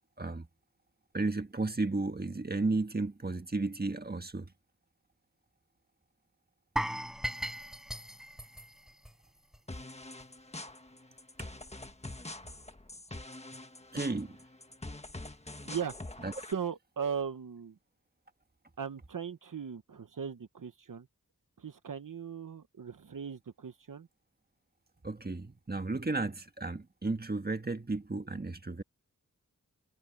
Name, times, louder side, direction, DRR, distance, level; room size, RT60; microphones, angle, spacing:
voice 1, 1.1-4.5 13.9-14.4 16.2-16.3 25.0-28.8, right 3 dB, 30° right, 1.6 m, -33 dB
sound 1, 6.8-9.8 10.0-10.2 10.7-10.8, equal, ahead, 0.4 m, -37 dB
sound 2, 9.7-16.5, left 2 dB, 20° left, 1.4 m, -45 dB
voice 2, 15.6-15.9 16.5-17.8 18.8-21.1 21.6-24.1, right 7 dB, 70° right, 1.0 m, -38 dB
wide cardioid pair, 75°, 33 cm